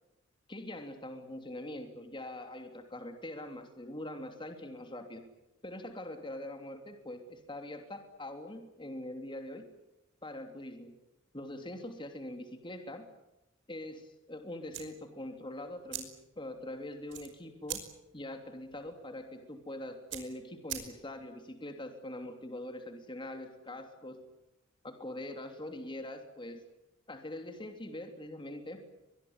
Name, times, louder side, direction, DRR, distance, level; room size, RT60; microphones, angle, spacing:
voice 1, 0.5-5.2 5.6-9.7 10.2-11.0 11.3-13.1 13.7-17.8 18.1-24.2 24.8-26.6 27.1-28.8, left 1 dB, 25° left, 6 dB, 3.1 m, -43 dB
sound 1, 14.7-21.3, right 10 dB, 65° right, 5.4 m, -46 dB
24.5 x 21.5 x 9.7 m, 0.92 s
head